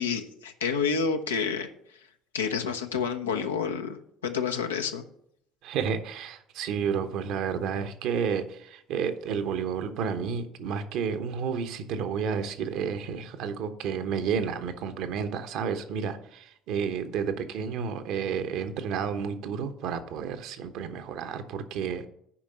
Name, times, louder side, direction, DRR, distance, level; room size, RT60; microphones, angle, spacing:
voice 1, 0.0-2.0 2.3-5.0, left 6 dB, 85° left, 6 dB, 0.8 m, -29 dB
voice 2, 5.6-22.1, right 6 dB, 60° right, 9 dB, 1.0 m, -31 dB
8.7 x 5.2 x 6.8 m, 0.71 s
figure-of-eight pair, 55°, 0 cm